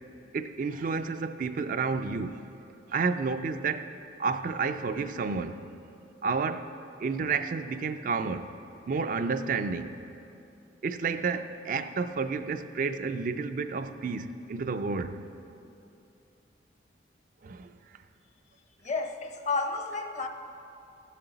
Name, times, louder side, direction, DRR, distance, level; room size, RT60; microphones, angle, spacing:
voice 1, 0.3-2.4 2.9-3.9 4.2-5.6 6.2-6.7 7.0-8.5 8.9-10.0 10.8-15.3 17.4-17.7, right 4 dB, 50° right, 9 dB, 0.4 m, -30 dB
voice 2, 18.8-20.3, left 3 dB, 40° left, 5 dB, 0.7 m, -31 dB
15.5 x 7.5 x 4.0 m, 2.8 s
head